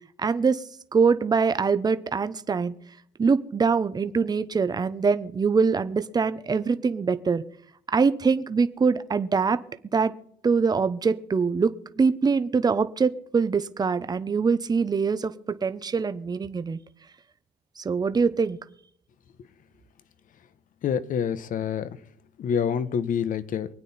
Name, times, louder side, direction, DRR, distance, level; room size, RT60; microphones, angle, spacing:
voice 1, 0.2-0.6 0.9-2.7 3.2-7.4 7.9-9.6 9.9-10.1 10.4-16.8 17.8-18.6, right 5 dB, 25° right, 0.9 m, -23 dB
voice 2, 20.8-21.9 22.4-23.7, left 7 dB, 55° left, 1.1 m, -26 dB
24.5 x 9.2 x 4.3 m
cardioid pair, 110°, 17 cm